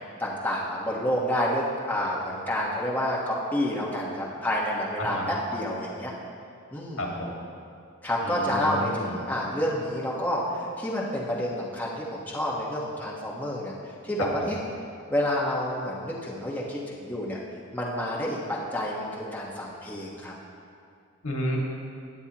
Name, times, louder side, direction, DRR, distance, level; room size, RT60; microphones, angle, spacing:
voice 1, 0.2-6.1 6.7-7.1 8.0-13.7 14.0-14.6 15.1-17.4 17.7-20.3, equal, 10° left, -6 dB, 1.4 m, -29 dB
voice 2, 5.0-5.3 7.0-7.5 8.2-9.1 14.4-14.5 21.2-21.6, left 1 dB, 85° left, -2 dB, 2.1 m, -32 dB
17.0 x 9.1 x 3.0 m, 2.4 s
head